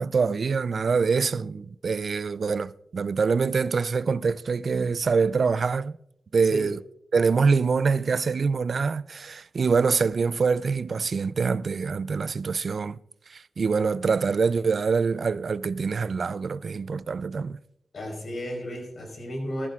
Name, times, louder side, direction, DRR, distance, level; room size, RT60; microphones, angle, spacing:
voice 1, 0.0-6.0 6.3-6.8 7.1-13.0 13.3-17.6, right 5 dB, 70° right, 0.3 m, -25 dB
voice 2, 17.9-19.7, equal, 70° left, 4.7 m, -33 dB
14.5 x 14.5 x 2.4 m
cardioid pair, 55°, 0 cm